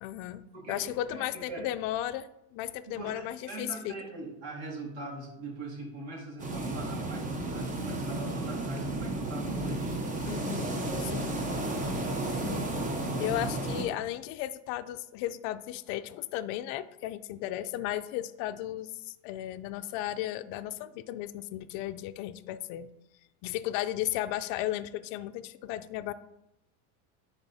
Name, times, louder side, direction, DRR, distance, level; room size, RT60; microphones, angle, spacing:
voice 1, 0.0-0.4 0.7-3.9 10.3-10.7 11.0-11.3 12.4-12.7 13.2-22.9 23.4-26.1, left 13 dB, 55° left, 11 dB, 0.5 m, -35 dB
voice 2, 0.5-1.6 2.9-10.0, right 2 dB, 60° right, -3 dB, 2.6 m, -41 dB
sound 1, 6.4-13.8, right 2 dB, 20° right, 0.9 m, -33 dB
10.5 x 4.0 x 2.8 m, 0.87 s
supercardioid pair, 125°, 42 cm